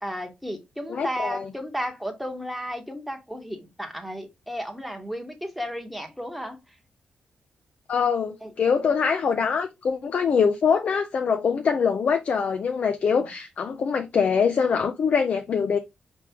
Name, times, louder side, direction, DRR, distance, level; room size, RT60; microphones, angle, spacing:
voice 1, 0.0-6.6 8.4-8.5 13.2-13.3, equal, ahead, 1.1 m, -33 dB
voice 2, 0.9-1.5 7.9-15.8, left 6 dB, 50° left, 0.5 m, -23 dB
4.8 x 3.5 x 2.8 m
wide cardioid pair, 130°, 3 cm